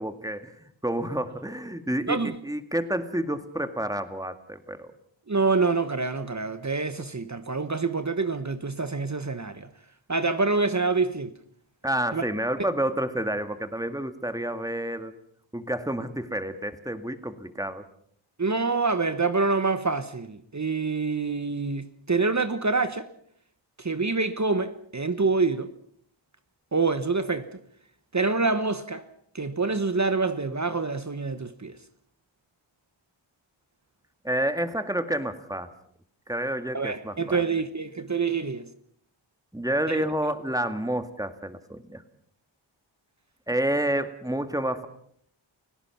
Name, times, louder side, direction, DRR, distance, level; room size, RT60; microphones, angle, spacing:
voice 1, 0.0-4.9 11.8-15.1 15.5-17.9 34.2-35.7 36.3-37.4 39.5-42.0 43.5-44.9, right 1 dB, 5° right, 2.0 m, -29 dB
voice 2, 2.1-2.4 5.3-9.7 10.1-11.3 12.1-12.2 18.4-23.1 23.8-25.7 26.7-27.6 28.1-29.0 29.3-31.7 36.7-38.7 39.9-40.0, right 4 dB, 35° right, 1.3 m, -26 dB
30.0 x 17.0 x 5.9 m
wide cardioid pair, 70°, 47 cm